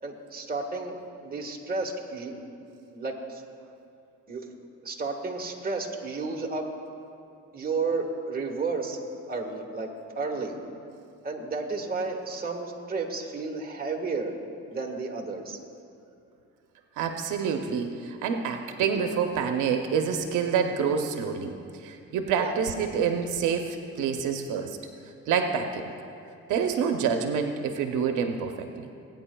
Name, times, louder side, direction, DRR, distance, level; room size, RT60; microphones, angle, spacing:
voice 1, 0.0-0.9 1.2-2.4 2.9-3.4 4.3-4.4 4.8-6.7 7.5-9.0 9.3-9.9 10.1-10.6 11.2-14.3 14.7-15.6 22.4-22.6, right 3 dB, 30° right, 1 dB, 1.5 m, -32 dB
voice 2, 17.0-24.8 25.3-25.9 26.5-28.9, right 6 dB, 85° right, 5 dB, 0.7 m, -27 dB
20.5 x 9.3 x 2.3 m, 2.5 s
cardioid pair, 90°, 30 cm